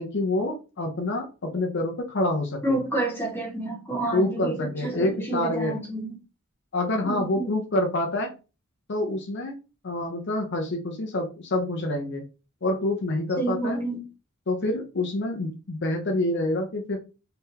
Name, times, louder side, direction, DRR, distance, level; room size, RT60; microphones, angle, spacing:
voice 1, 0.0-2.8 4.1-5.8 6.7-8.3 8.9-9.6 9.8-12.3 12.6-13.8 14.5-17.0, left 1 dB, 60° left, 3 dB, 0.7 m, -27 dB
voice 2, 2.6-6.1 7.0-7.5 13.4-14.0, right 1 dB, 10° left, -3 dB, 1.6 m, -29 dB
3.7 x 3.3 x 2.8 m, 0.31 s
head